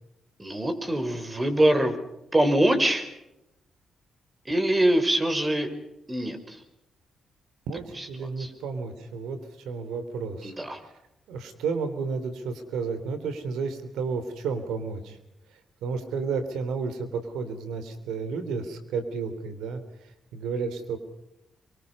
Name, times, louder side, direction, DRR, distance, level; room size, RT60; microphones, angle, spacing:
voice 1, 0.4-1.9 2.3-3.1 4.5-5.7 6.1-6.6 8.0-8.5 10.4-10.8, right 1 dB, 25° right, 8 dB, 5.4 m, -24 dB
voice 2, 7.7-10.5 10.8-10.9 11.3-15.2 15.8-19.8 20.3-21.0, right 5 dB, 90° right, 10 dB, 3.4 m, -32 dB
27.5 x 24.0 x 5.5 m, 0.87 s
supercardioid pair, 65°, 0 cm